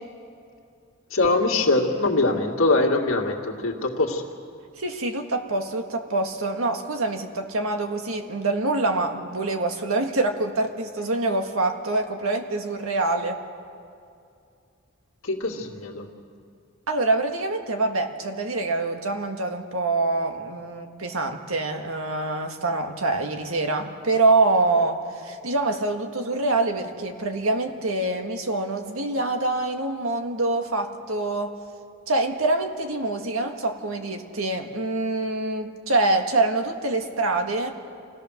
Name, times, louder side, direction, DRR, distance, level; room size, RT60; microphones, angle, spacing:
voice 1, 1.1-4.2 15.2-16.0, left 2 dB, 70° left, 0 dB, 2.2 m, -23 dB
voice 2, 4.8-13.4 16.9-31.5 32.1-37.7, right 2 dB, 80° right, 5 dB, 1.7 m, -25 dB
27.5 x 17.0 x 6.6 m, 2.5 s
head